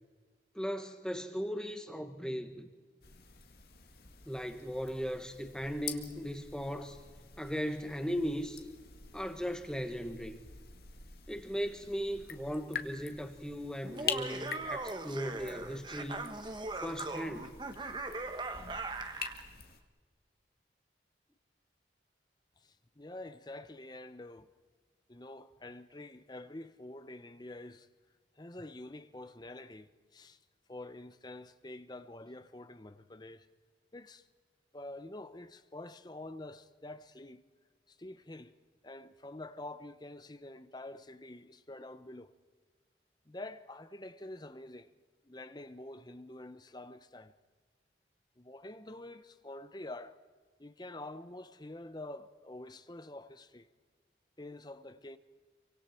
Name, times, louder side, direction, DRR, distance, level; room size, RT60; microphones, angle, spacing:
voice 1, 0.5-2.7 4.3-7.0 7.4-8.6 9.1-10.4 11.3-16.3 16.8-17.5, equal, 5° left, 1.6 m, -37 dB
sound 1, 3.0-19.8, left 7 dB, 55° left, 2.0 m, -46 dB
Laughter, 13.8-19.4, right 3 dB, 25° right, 1.2 m, -40 dB
voice 2, 22.6-24.5 25.1-27.9 28.4-30.4 30.7-33.5 33.9-34.2 34.7-37.4 37.9-38.6 38.8-42.3 43.3-44.9 45.2-47.3 48.4-50.2 50.6-53.7 54.4-55.2, left 1 dB, 25° left, 0.9 m, -47 dB
28.5 x 25.0 x 4.5 m
head